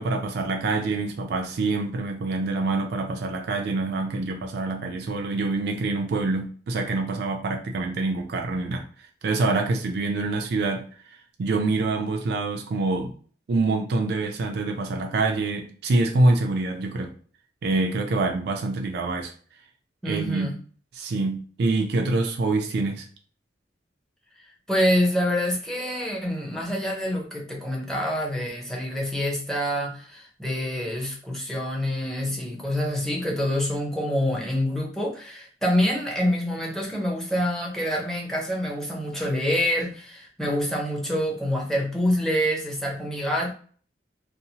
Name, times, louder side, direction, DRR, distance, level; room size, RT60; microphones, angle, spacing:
voice 1, 0.0-13.1 13.5-17.1 17.6-19.3 20.0-20.5 20.9-23.1, right 3 dB, 60° right, 3 dB, 0.3 m, -26 dB
voice 2, 20.0-20.5 24.4-43.5, equal, 5° left, -2 dB, 0.6 m, -26 dB
2.7 x 2.0 x 2.7 m, 0.42 s
head